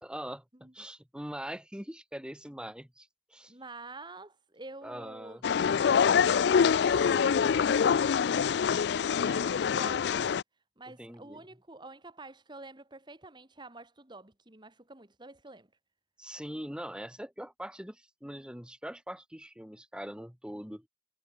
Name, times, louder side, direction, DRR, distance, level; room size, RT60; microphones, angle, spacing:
voice 1, 0.0-3.5 4.8-5.4 10.9-11.4 16.2-20.9, equal, 5° right, 1.6 m, -42 dB
voice 2, 3.5-5.4 5.8-8.2 9.2-10.3 10.8-15.7, right 2 dB, 25° right, 1.9 m, -48 dB
sound 1, 5.4-10.4, left 7 dB, 60° left, 0.3 m, -25 dB
head